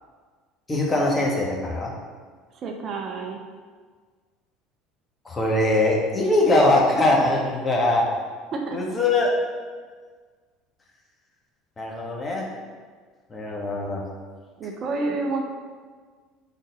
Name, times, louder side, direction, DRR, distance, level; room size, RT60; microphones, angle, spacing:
voice 1, 0.7-1.9 5.2-8.1 8.7-9.3 11.8-12.4 13.3-14.0, left 2 dB, 25° left, -2 dB, 1.7 m, -22 dB
voice 2, 2.6-3.4 8.5-8.8 14.6-15.4, right 3 dB, 45° right, 2 dB, 0.8 m, -29 dB
6.3 x 4.3 x 5.3 m, 1.6 s
figure-of-eight pair, 65°, 0 cm